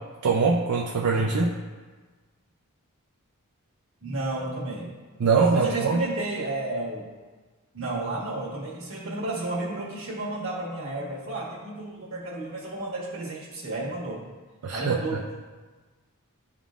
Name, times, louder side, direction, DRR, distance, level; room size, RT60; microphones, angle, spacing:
voice 1, 0.2-1.5 5.2-6.0 14.6-15.2, right 4 dB, 85° right, -1 dB, 0.5 m, -23 dB
voice 2, 4.0-4.9 5.5-7.1 7.7-14.2 14.7-15.2, right 2 dB, 60° right, -3 dB, 1.4 m, -32 dB
11.0 x 3.7 x 2.4 m, 1.3 s
head